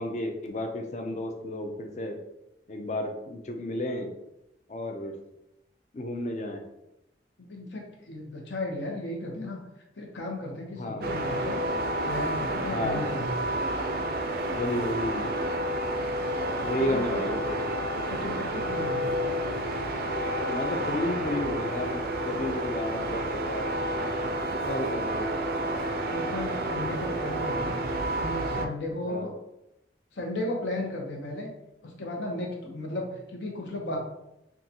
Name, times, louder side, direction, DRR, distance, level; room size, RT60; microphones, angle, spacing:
voice 1, 0.0-2.2 2.7-4.1 4.7-5.1 5.9-6.6 10.7-11.2 12.7-13.2 14.5-15.3 16.6-17.5 20.4-23.7 24.7-25.4 29.0-29.3, left 1 dB, 40° left, 4 dB, 0.4 m, -32 dB
voice 2, 7.5-9.6 10.0-11.6 12.0-13.5 16.8-17.2 18.1-19.2 26.1-27.8 28.1-29.3 30.1-31.5 31.8-34.0, left 1 dB, 80° left, 0 dB, 0.8 m, -35 dB
sound 1, 11.0-28.7, right 1 dB, 55° right, 0.3 m, -30 dB
3.7 x 2.3 x 2.8 m, 0.86 s
head